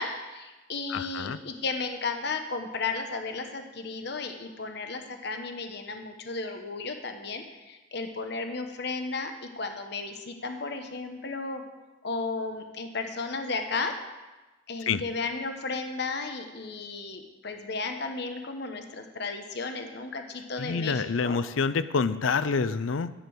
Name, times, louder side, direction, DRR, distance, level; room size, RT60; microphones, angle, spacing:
voice 1, 0.0-11.6 12.0-13.9 14.7-21.4, left 3 dB, 60° left, 5 dB, 1.1 m, -34 dB
voice 2, 0.9-1.4 14.9-15.0 20.6-23.1, left 5 dB, 90° left, 14 dB, 0.5 m, -27 dB
11.0 x 6.8 x 7.8 m, 1.2 s
head